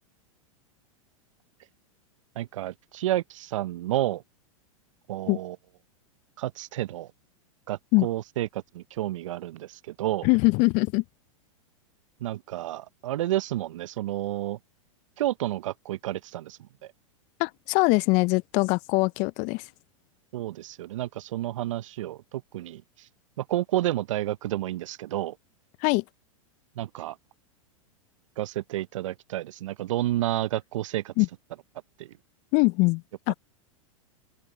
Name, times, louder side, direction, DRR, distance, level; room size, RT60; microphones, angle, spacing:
voice 1, 2.4-4.2 5.1-5.6 6.4-7.1 7.7-10.3 12.2-14.6 15.2-16.9 20.3-22.8 23.4-25.4 26.8-27.2 28.4-31.1 32.0-32.1, right 14 dB, 65° right, 0.9 m, -30 dB
voice 2, 10.2-11.0 17.4-19.7 25.8-26.0 31.2-31.3 32.5-33.3, left 27 dB, 45° left, 0.6 m, -22 dB
open air
hypercardioid pair, 100°, 18 cm